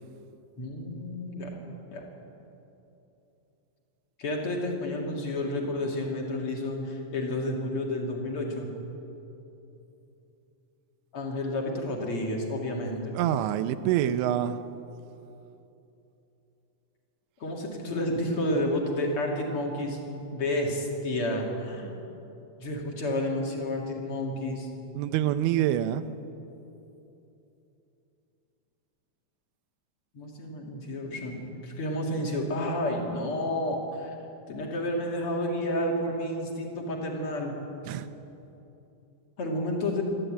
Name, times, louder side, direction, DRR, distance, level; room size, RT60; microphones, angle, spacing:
voice 1, 0.6-1.6 1.9-2.0 4.2-8.7 11.1-13.1 17.4-20.0 20.3-21.9 22.6-24.7 30.1-34.1 34.5-37.5 39.4-40.0, left 1 dB, 35° left, 0 dB, 3.2 m, -30 dB
voice 2, 13.1-14.6 25.0-26.0 37.9-38.1, right 11 dB, 85° right, 11 dB, 3.1 m, -26 dB
26.0 x 12.5 x 9.1 m, 2.9 s
omnidirectional pair, 5.2 m